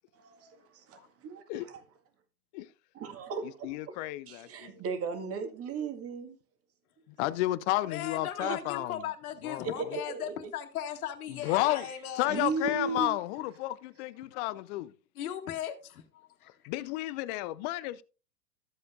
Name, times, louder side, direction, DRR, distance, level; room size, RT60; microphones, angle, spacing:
voice 1, 0.2-1.8 3.0-3.7 4.3-6.4 8.4-8.6 9.8-10.5 11.5-11.9 12.3-13.1, right 5 dB, 30° right, 2.0 m, -36 dB
voice 2, 3.4-4.8 11.5-11.8 12.2-12.3 12.7-13.2 13.6-14.8 16.4-18.0, left 16 dB, 30° left, 0.4 m, -40 dB
voice 3, 7.2-9.0 9.4-10.0 11.3-11.9 12.2-14.9, left 17 dB, 50° left, 0.8 m, -30 dB
voice 4, 7.9-12.5 15.2-16.5, left 10 dB, 65° left, 2.1 m, -38 dB
14.0 x 7.6 x 2.6 m
hypercardioid pair, 100°, 46 cm